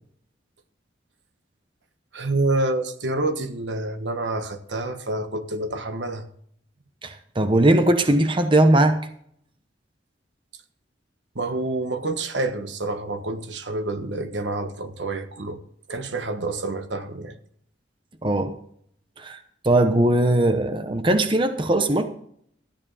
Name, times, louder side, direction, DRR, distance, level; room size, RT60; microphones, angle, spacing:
voice 1, 2.1-6.3 11.3-15.6 15.9-17.4, right 2 dB, 80° right, 8 dB, 1.3 m, -28 dB
voice 2, 7.0-9.0 18.2-18.5 19.2-19.4 19.6-22.1, right 1 dB, 30° right, 8 dB, 0.9 m, -19 dB
13.5 x 9.6 x 4.1 m, 0.65 s
head